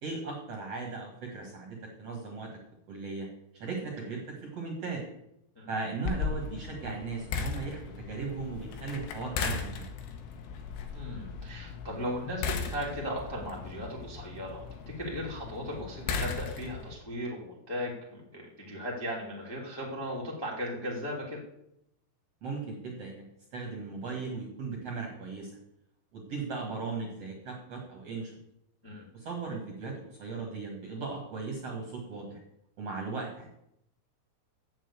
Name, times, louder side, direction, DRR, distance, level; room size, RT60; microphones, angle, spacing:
voice 1, 0.0-2.5 2.9-3.3 3.5-5.0 5.7-9.9 22.4-23.2 23.5-25.5 26.1-28.3 29.1-32.4 32.8-33.5, right 4 dB, 50° right, 0 dB, 2.1 m, -37 dB
sound 1, 6.1-16.9, left 5 dB, 85° left, 3.3 m, -37 dB
voice 2, 10.9-21.4 28.8-29.0, equal, 10° left, -3 dB, 1.1 m, -37 dB
7.5 x 7.5 x 8.2 m, 0.80 s
omnidirectional pair, 4.8 m